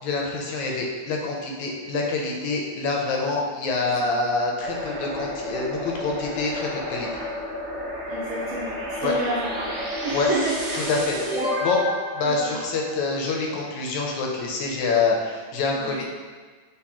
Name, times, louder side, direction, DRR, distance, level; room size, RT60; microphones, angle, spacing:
voice 1, 0.0-7.2 9.0-9.1 10.1-10.3 10.9-11.4 11.6-11.8 12.1-16.0, left 3 dB, 80° left, -1 dB, 1.9 m, -26 dB
sound 1, 4.6-13.3, left 1 dB, 60° right, 1.6 m, -31 dB
voice 2, 8.1-10.9 11.3-11.5 12.2-12.6 15.7-16.0, right 2 dB, 75° right, -7 dB, 1.5 m, -30 dB
4.6 x 2.9 x 3.5 m, 1.4 s
omnidirectional pair, 3.4 m